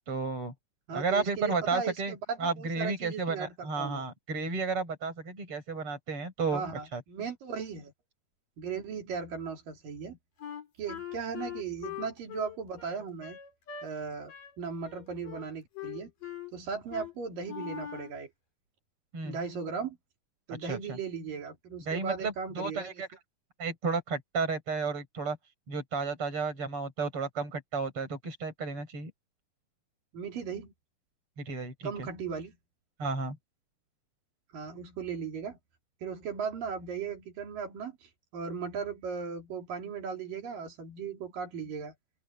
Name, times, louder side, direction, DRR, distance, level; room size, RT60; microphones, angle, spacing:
voice 1, 0.1-0.5 0.9-2.1 2.4-7.0 19.1-19.4 20.6-20.8 21.9-23.1 23.6-25.4 25.7-29.1 31.4-32.1 33.0-33.4, right 4 dB, 40° right, 8.2 m, -32 dB
voice 2, 0.9-4.0 6.5-7.9 8.6-10.2 10.8-13.4 13.8-16.1 16.5-18.3 19.2-20.0 20.5-23.0 30.1-30.7 31.8-32.6 34.5-35.6 36.0-41.9, right 6 dB, 80° right, 4.7 m, -37 dB
Wind instrument woodwind instrument, 10.4-13.9 14.3-14.6 14.8-15.5 15.8-16.5 16.9-17.1 17.5-18.2, left 10 dB, 75° left, 5.5 m, -41 dB
open air
omnidirectional pair, 3.9 m